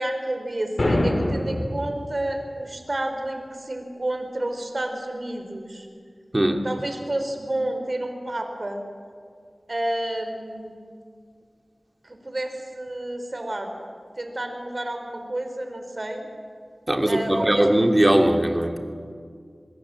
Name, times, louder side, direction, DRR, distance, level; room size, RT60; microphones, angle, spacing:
voice 1, 0.0-5.9 6.6-8.9 9.7-10.7 12.0-13.7 14.2-16.3 17.1-17.7, right 1 dB, 50° right, 5 dB, 4.0 m, -30 dB
sound 1, 0.8-1.8, left 1 dB, 60° left, 4.4 m, -23 dB
voice 2, 16.9-18.8, right 1 dB, 30° right, 4 dB, 2.6 m, -20 dB
26.0 x 21.5 x 7.7 m, 2.1 s
wide cardioid pair, 45°, 0 cm